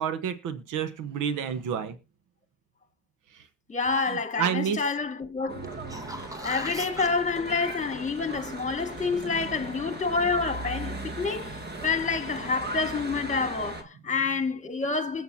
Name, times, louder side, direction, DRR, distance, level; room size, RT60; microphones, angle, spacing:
voice 1, 0.0-2.0 3.3-3.5 4.0-4.8 8.9-9.6, right 8 dB, 85° right, 1.2 m, -31 dB
voice 2, 3.7-5.8 6.4-15.2, left 4 dB, 25° left, 2.0 m, -28 dB
Church bell / Traffic noise roadway noise, 5.5-13.8, right 2 dB, 35° right, 2.3 m, -38 dB
sound 1, 5.6-7.1 11.9-12.0, equal, 10° right, 1.3 m, -38 dB
21.0 x 8.0 x 2.8 m
cardioid pair, 90°, 30 cm